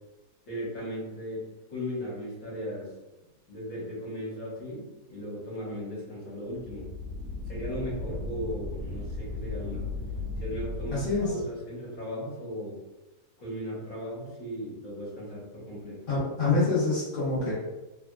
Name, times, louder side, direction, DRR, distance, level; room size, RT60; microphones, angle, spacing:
voice 1, 0.5-2.9 3.5-6.9 7.5-9.9 10.4-12.8 13.4-16.0, equal, 55° left, -7 dB, 1.6 m, -37 dB
sound 1, 6.5-11.3, left 3 dB, 80° right, 1.1 m, -36 dB
voice 2, 10.9-11.3 16.1-17.5, left 3 dB, 40° left, -9 dB, 1.1 m, -26 dB
3.4 x 2.7 x 2.3 m, 1.0 s
omnidirectional pair, 1.7 m